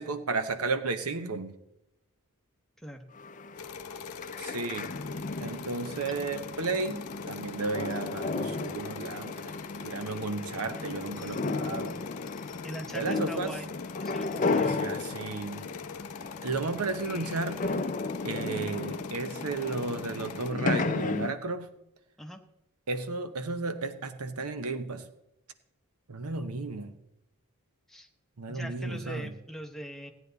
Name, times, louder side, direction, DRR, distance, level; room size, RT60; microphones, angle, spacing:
voice 1, 0.0-1.6 4.4-4.9 5.4-9.5 9.8-12.0 12.9-13.6 14.4-15.7 16.4-17.9 18.2-21.7 22.9-25.1 26.1-27.0 28.4-29.3, right 3 dB, 80° right, 0.9 m, -33 dB
sound 1, 3.2-21.3, left 3 dB, 35° left, 0.5 m, -34 dB
sound 2, 3.5-20.5, left 6 dB, 90° left, 0.7 m, -45 dB
voice 2, 12.6-13.7 14.0-14.7 22.2-22.4 27.9-28.1 28.5-30.1, equal, ahead, 1.0 m, -41 dB
16.5 x 9.2 x 4.0 m
head